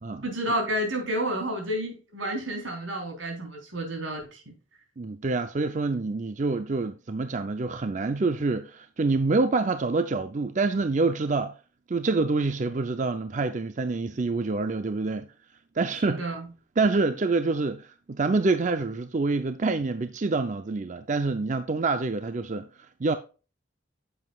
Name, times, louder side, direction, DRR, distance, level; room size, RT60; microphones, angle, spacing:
voice 1, 0.2-4.5 15.9-16.5, right 1 dB, 85° right, 3.6 m, -30 dB
voice 2, 5.0-11.5 11.9-15.3 15.7-16.2 16.8-23.2, right 3 dB, 40° right, 0.5 m, -26 dB
9.5 x 7.8 x 2.3 m
head